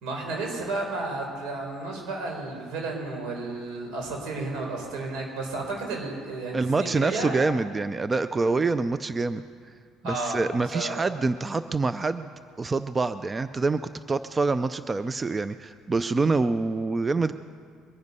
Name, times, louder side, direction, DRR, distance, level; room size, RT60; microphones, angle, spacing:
voice 1, 0.0-7.3 10.0-10.4 10.7-10.9, right 3 dB, 85° right, 0 dB, 4.4 m, -32 dB
voice 2, 6.5-9.4 10.0-12.3 12.6-13.8 14.1-17.3, right 3 dB, 20° right, 13 dB, 0.4 m, -26 dB
22.5 x 9.6 x 5.5 m, 2.1 s
cardioid pair, 130°, 0 cm